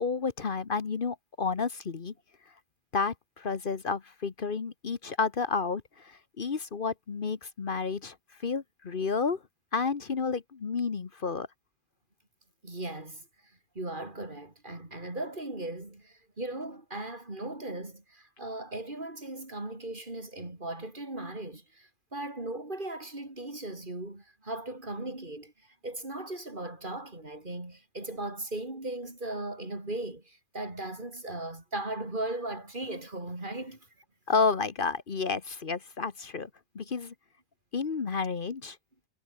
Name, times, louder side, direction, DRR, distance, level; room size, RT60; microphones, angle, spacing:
voice 1, 0.0-2.1 2.9-8.2 8.4-9.4 9.7-11.5 34.3-36.5 36.7-37.1 37.7-38.8, left 5 dB, 55° left, 1.3 m, -31 dB
voice 2, 12.6-13.3 13.7-33.8 36.8-36.9, right 2 dB, 50° right, 4.4 m, -38 dB
omnidirectional pair, 1.1 m